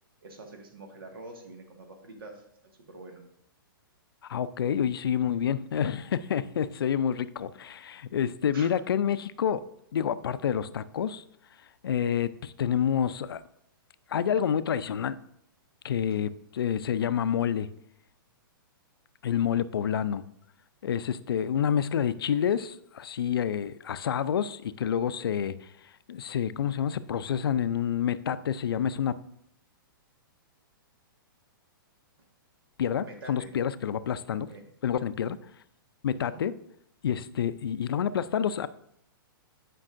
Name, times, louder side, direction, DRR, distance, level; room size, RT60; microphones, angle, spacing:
voice 1, 0.2-2.4 2.9-3.2 8.5-8.7 16.1-16.2 33.0-33.5 34.3-34.7 36.1-36.4, right 2 dB, 80° right, 4 dB, 1.6 m, -46 dB
voice 2, 4.2-9.6 9.9-11.2 11.8-13.4 14.1-15.2 15.8-17.7 19.2-20.2 20.8-25.6 26.1-29.1 32.8-34.5 34.8-35.4 36.0-36.5 37.0-38.7, left 8 dB, 80° left, 15 dB, 0.4 m, -28 dB
9.9 x 5.3 x 2.5 m, 0.72 s
hypercardioid pair, 135°, 12 cm